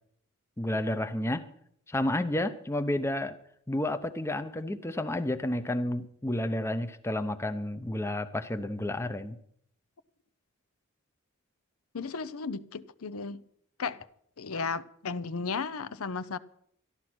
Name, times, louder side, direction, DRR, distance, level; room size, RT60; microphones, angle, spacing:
voice 1, 0.6-1.5 1.9-3.4 3.7-9.4, left 1 dB, 10° left, 0.7 m, -31 dB
voice 2, 11.9-13.4 13.8-14.1 14.4-16.4, left 4 dB, 70° left, 0.7 m, -34 dB
13.0 x 12.0 x 6.1 m
head